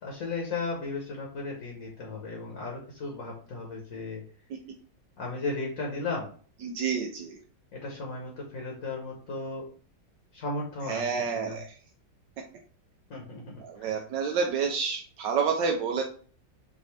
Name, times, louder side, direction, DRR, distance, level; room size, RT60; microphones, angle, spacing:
voice 1, 0.0-4.2 5.2-6.3 7.7-9.7 10.3-11.1 11.3-11.6 13.1-13.5 13.8-14.0, left 3 dB, 55° left, -1 dB, 1.3 m, -35 dB
voice 2, 6.6-7.4 10.9-11.7 13.6-16.0, right 6 dB, 80° right, 2 dB, 1.3 m, -29 dB
5.2 x 2.7 x 3.2 m, 0.43 s
omnidirectional pair, 2.0 m